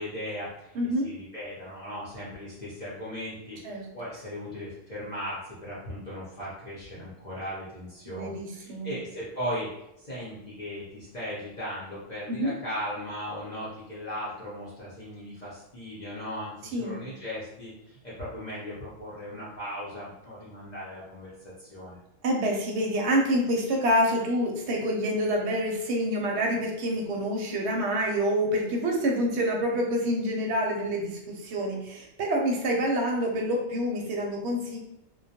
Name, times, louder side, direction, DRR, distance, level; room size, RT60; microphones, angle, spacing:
voice 1, 0.0-0.7 1.0-9.7 10.0-22.0, equal, 45° left, -8 dB, 0.6 m, -37 dB
voice 2, 0.7-1.1 3.6-3.9 8.1-8.9 12.3-12.5 16.7-17.0 22.2-34.8, equal, 65° right, 0 dB, 0.8 m, -27 dB
2.2 x 2.1 x 2.7 m, 0.85 s
omnidirectional pair, 1.3 m